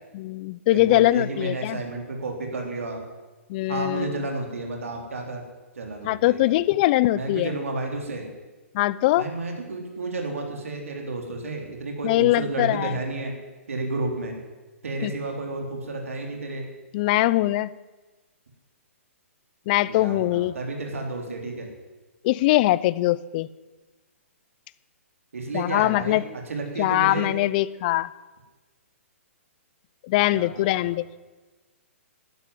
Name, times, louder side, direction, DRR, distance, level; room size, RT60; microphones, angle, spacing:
voice 1, 0.1-1.8 3.5-4.2 6.0-7.5 8.7-9.3 12.0-12.9 15.0-15.1 16.9-17.7 19.7-20.5 22.2-23.5 25.5-26.2 26.8-28.1 30.0-31.3, left 17 dB, 40° left, 20 dB, 0.6 m, -22 dB
voice 2, 0.7-3.0 3.7-5.4 5.8-6.6 7.1-8.3 9.1-13.3 13.7-14.4 14.8-16.7 19.9-21.7 25.3-26.2 26.5-27.3 30.3-30.9, right 2 dB, 75° right, 2 dB, 3.7 m, -31 dB
12.0 x 12.0 x 9.8 m, 1.2 s
hypercardioid pair, 130°, 7 cm